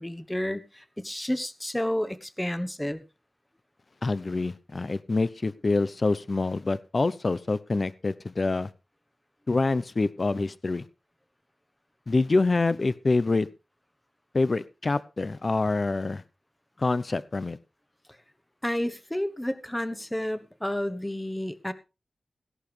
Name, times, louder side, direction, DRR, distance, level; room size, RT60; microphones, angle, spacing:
voice 1, 0.0-3.0 18.6-21.7, left 1 dB, 10° left, 1.2 m, -31 dB
voice 2, 4.0-8.7 9.5-10.9 12.1-13.5 14.3-16.2 16.8-17.6, left 3 dB, 45° left, 0.8 m, -26 dB
17.0 x 11.0 x 3.4 m
wide cardioid pair, 85°, 0 cm